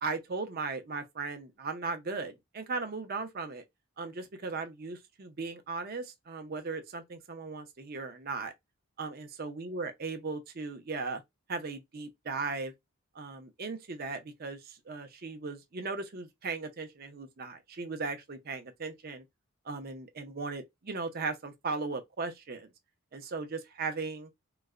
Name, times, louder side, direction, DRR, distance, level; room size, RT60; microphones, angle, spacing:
voice 1, 0.0-3.6 4.0-8.5 9.0-11.2 11.5-12.7 13.1-19.2 19.7-22.7 23.1-24.3, right 4 dB, 40° right, 0.5 m, -37 dB
3.9 x 2.1 x 2.4 m
head